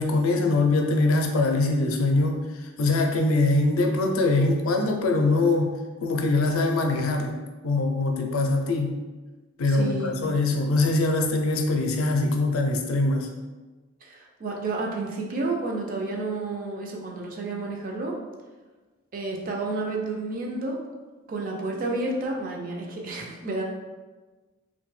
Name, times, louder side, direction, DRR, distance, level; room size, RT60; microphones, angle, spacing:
voice 1, 0.0-2.5 2.8-5.7 6.0-7.4 7.6-9.0 9.6-13.3, left 2 dB, 85° left, 3 dB, 0.4 m, -23 dB
voice 2, 9.6-10.1 14.0-18.2 19.1-20.8 21.3-23.6, right 2 dB, 40° right, 0 dB, 0.4 m, -30 dB
2.7 x 2.1 x 3.1 m, 1.3 s
head